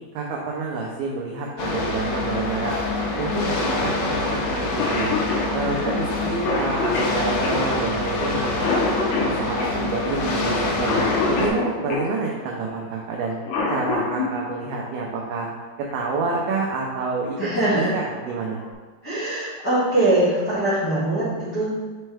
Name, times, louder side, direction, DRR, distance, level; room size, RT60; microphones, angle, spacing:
voice 1, 0.2-5.1 5.5-8.9 9.2-13.4 13.7-15.5 15.9-17.4 17.7-18.6, right 4 dB, 85° right, -2 dB, 2.2 m, -28 dB
sound 1, 1.6-11.5, left 2 dB, 90° left, 3.1 m, -26 dB
Cough, 4.5-4.6 4.8-12.1 13.2-14.3 15.9-16.0 17.0-17.3 17.8-17.9 18.3-18.7, left 3 dB, 75° left, 2.8 m, -27 dB
voice 2, 5.6-5.9 17.4-18.0 19.0-21.7, right 1 dB, 50° left, -14 dB, 1.1 m, -22 dB
6.6 x 4.4 x 3.3 m, 1.3 s
omnidirectional pair, 5.3 m